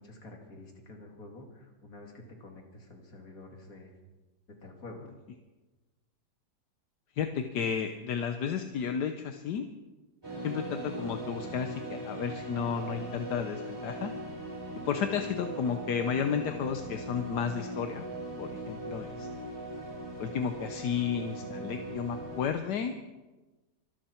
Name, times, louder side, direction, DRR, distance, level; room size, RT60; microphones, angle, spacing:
voice 1, 0.0-3.9 4.6-5.1, left 2 dB, 55° left, 2 dB, 3.0 m, -48 dB
voice 2, 7.2-9.6 10.4-14.1 14.9-18.1 18.4-19.3 20.2-23.0, left 7 dB, 80° left, 7 dB, 1.5 m, -32 dB
sound 1, 10.2-22.5, right 1 dB, 15° right, 5.4 m, -39 dB
24.5 x 12.5 x 4.5 m, 1.2 s
omnidirectional pair, 1.8 m